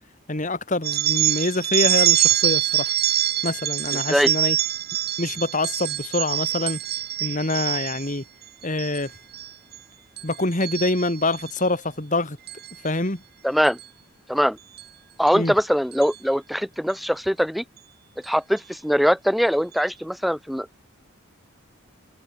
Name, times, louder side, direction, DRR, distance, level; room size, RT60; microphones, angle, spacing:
voice 1, 0.3-2.9 3.4-4.6 5.2-6.8 7.2-8.2 8.6-9.1 10.2-12.4 12.8-13.2 15.3-15.5, left 2 dB, 35° left, 2.5 m, -25 dB
sound 1, 0.8-8.1 8.6-9.0 9.3-9.8 10.2-11.5 12.5-12.7 13.6-13.8 14.8-14.9 15.3-15.4 15.9-16.1, right 13 dB, 50° right, 2.3 m, -24 dB
voice 2, 3.9-4.3 13.4-13.8 14.3-14.6 15.2-17.6 18.2-20.8, equal, ahead, 2.5 m, -22 dB
head